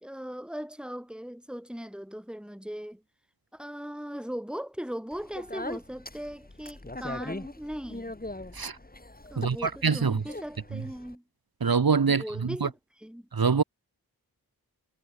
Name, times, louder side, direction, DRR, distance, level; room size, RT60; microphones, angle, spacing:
voice 1, 0.0-3.0 3.5-8.2 9.3-11.2 12.0-13.3, equal, ahead, 3.2 m, -39 dB
Speech, 5.1-11.2, left 2 dB, 25° left, 3.6 m, -41 dB
voice 2, 9.4-10.2 11.6-12.7 13.3-13.6, right 5 dB, 65° right, 1.7 m, -25 dB
cardioid pair, 45°, 39 cm